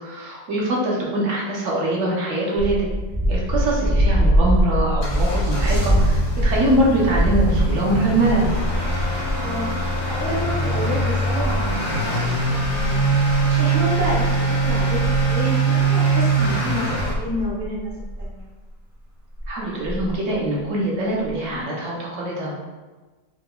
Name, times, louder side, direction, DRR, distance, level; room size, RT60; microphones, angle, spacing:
voice 1, 0.0-2.8 3.3-8.5 19.5-22.6, right 1 dB, 60° right, -5 dB, 0.9 m, -23 dB
sound 1, 2.6-15.4 15.8-15.9 16.9-18.4 19.4-19.5 19.8-20.2 21.3-21.4, right 1 dB, ahead, 0.5 m, -24 dB
Motor vehicle (road) / Accelerating revving vroom, 4.5-17.1, right 2 dB, 55° left, 0.5 m, -23 dB
voice 2, 9.3-11.6 11.9-12.0 12.7-13.0 13.4-17.9 18.2-18.5, equal, 90° right, -4 dB, 0.4 m, -29 dB
4.6 x 2.1 x 2.2 m, 1.3 s
omnidirectional pair, 1.9 m